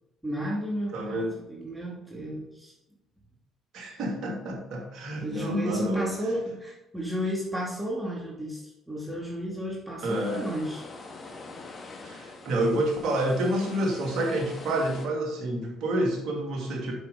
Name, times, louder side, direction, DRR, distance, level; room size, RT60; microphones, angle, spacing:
voice 1, 0.2-2.7 5.2-10.8, equal, 10° right, -3 dB, 2.5 m, -33 dB
voice 2, 0.9-1.3 3.7-6.1 10.0-10.4 12.0-16.9, right 1 dB, 60° right, 0 dB, 2.5 m, -28 dB
sound 1, 10.0-15.1, left 3 dB, 40° left, 1.8 m, -44 dB
7.8 x 6.7 x 3.8 m, 0.91 s
hypercardioid pair, 55°, 0 cm